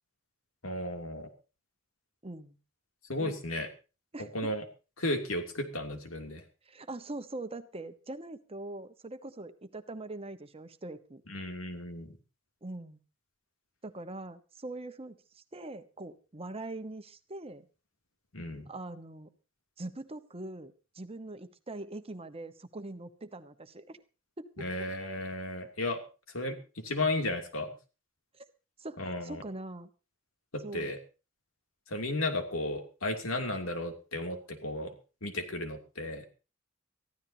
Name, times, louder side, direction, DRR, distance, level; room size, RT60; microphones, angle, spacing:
voice 1, 0.6-1.3 3.1-3.7 4.3-4.6 5.0-6.4 11.3-12.2 18.3-18.7 24.6-26.0 26.3-27.7 29.0-29.4 30.5-31.0 31.9-34.9 35.2-36.2, left 1 dB, 85° left, 5 dB, 2.9 m, -34 dB
voice 2, 2.2-2.6 3.2-3.3 4.1-4.5 6.6-11.2 12.6-13.0 13.8-17.7 18.7-19.3 19.8-24.0 24.4-24.5 28.3-28.5 28.8-29.9 30.6-31.0, right 2 dB, 30° right, 10 dB, 1.2 m, -42 dB
22.5 x 15.0 x 2.9 m, 0.33 s
head